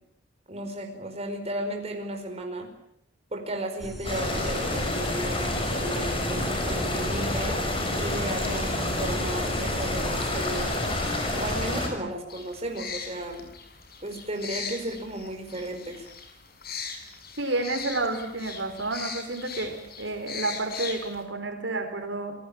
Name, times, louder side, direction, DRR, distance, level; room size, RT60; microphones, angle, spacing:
voice 1, 0.5-2.7 3.3-7.6 8.0-10.7 11.3-13.4 14.0-16.1, right 1 dB, 35° right, 3 dB, 5.0 m, -34 dB
sound 1, 3.8-11.8, right 1 dB, ahead, 3.3 m, -39 dB
sound 2, 4.0-11.9, left 1 dB, 30° left, 6.2 m, -28 dB
sound 3, 12.3-21.2, left 6 dB, 55° left, 6.1 m, -39 dB
voice 2, 17.4-22.3, right 2 dB, 75° right, 6 dB, 4.6 m, -30 dB
27.5 x 19.5 x 8.8 m, 0.76 s
head